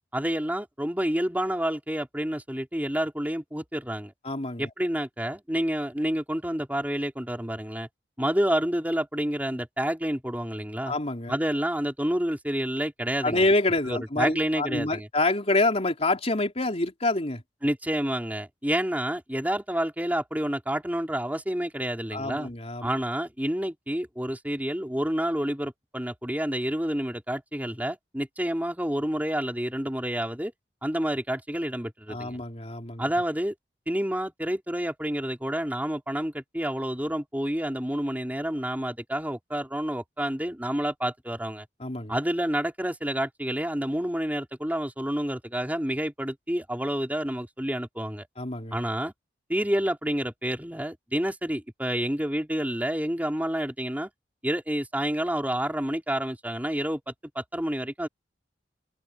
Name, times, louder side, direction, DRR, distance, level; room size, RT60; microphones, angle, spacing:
voice 1, 0.1-4.1 4.6-7.9 8.2-10.9 11.3-13.5 13.9-15.1 17.6-22.5 22.8-30.5 30.8-32.4 33.0-33.5 33.9-41.7 42.1-48.3 48.7-49.1 49.5-54.1 54.4-58.1, equal, 10° right, 4.1 m, -29 dB
voice 2, 4.2-4.7 10.9-11.3 13.2-17.4 22.1-22.9 32.1-33.0 41.8-42.1 48.4-48.8, left 2 dB, 35° left, 3.7 m, -27 dB
open air
head